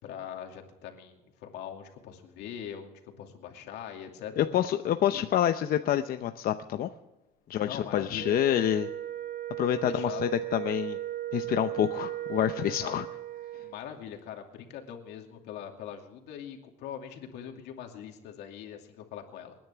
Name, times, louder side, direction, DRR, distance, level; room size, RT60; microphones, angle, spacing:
voice 1, 0.0-4.5 5.1-5.3 7.7-8.4 9.8-10.2 12.8-13.0 13.6-19.6, left 9 dB, 85° left, 3 dB, 2.5 m, -42 dB
voice 2, 4.4-6.9 7.5-8.9 9.6-11.0 11.3-13.1, left 11 dB, 60° left, 8 dB, 0.7 m, -27 dB
Wind instrument woodwind instrument, 8.1-13.8, right 13 dB, 55° right, 1.1 m, -36 dB
27.5 x 10.5 x 3.5 m, 1.0 s
cardioid pair, 110°, 17 cm